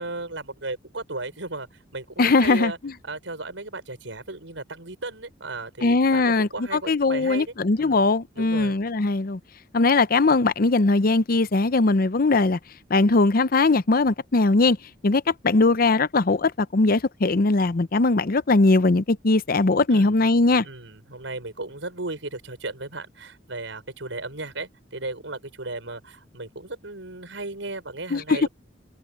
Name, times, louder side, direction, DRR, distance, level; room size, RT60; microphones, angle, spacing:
voice 1, 0.0-2.8 3.0-7.5 7.8-8.1 8.3-8.8 19.9-20.2 20.5-28.5, right 2 dB, 85° right, 5.9 m, -35 dB
voice 2, 2.2-2.7 5.8-9.4 9.7-12.6 12.9-14.8 15.0-20.7 28.1-28.5, left 3 dB, 50° left, 0.7 m, -20 dB
head